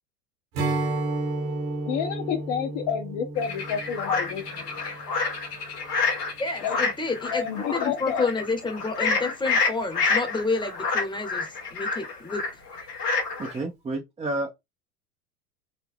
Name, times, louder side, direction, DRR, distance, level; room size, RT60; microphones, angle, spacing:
Strum, 0.5-6.0, right 2 dB, 60° right, 1.7 m, -32 dB
voice 1, 1.9-4.7 6.6-6.8 7.3-8.3, left 8 dB, 55° left, 0.9 m, -29 dB
sound 1, 3.4-13.6, left 4 dB, 85° left, 1.2 m, -28 dB
voice 2, 6.4-12.4, left 3 dB, 10° left, 0.9 m, -29 dB
voice 3, 13.4-14.5, right 2 dB, 15° right, 0.6 m, -30 dB
3.9 x 2.1 x 3.5 m
hypercardioid pair, 85°, 46 cm